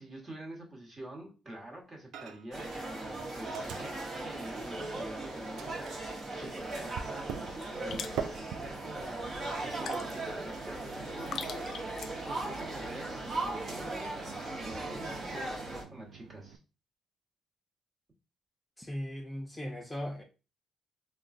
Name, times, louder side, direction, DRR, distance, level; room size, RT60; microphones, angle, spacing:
voice 1, 0.0-11.8 12.3-16.6, right 1 dB, 35° right, 1.3 m, -46 dB
Microwave oven, 2.1-2.6 2.9-5.2 5.6-16.6, right 8 dB, 80° right, 0.3 m, -46 dB
sound 1, 2.5-15.8, right 2 dB, 50° right, 1.0 m, -38 dB
gentle spashes, 6.7-12.5, left 7 dB, 65° left, 0.3 m, -47 dB
voice 2, 18.8-20.2, equal, 10° left, 0.5 m, -38 dB
3.6 x 2.3 x 2.5 m
cardioid pair, 90°, 0 cm